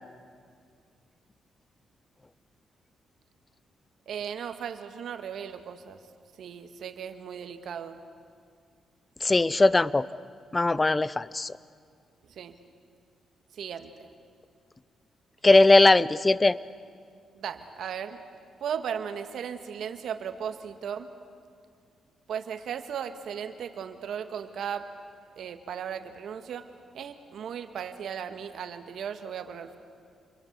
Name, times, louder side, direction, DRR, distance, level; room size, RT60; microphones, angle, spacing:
voice 1, 4.1-6.0 6.4-8.0 12.3-12.6 13.5-13.9 17.3-18.2 18.6-21.1 22.3-24.9 25.4-26.7 26.9-29.8, right 8 dB, 70° right, 8 dB, 1.7 m, -36 dB
voice 2, 9.2-10.1 10.5-11.5 15.4-16.6, left 2 dB, 25° left, 19 dB, 0.7 m, -20 dB
28.5 x 22.5 x 8.3 m, 2.2 s
cardioid pair, 80°, 0 cm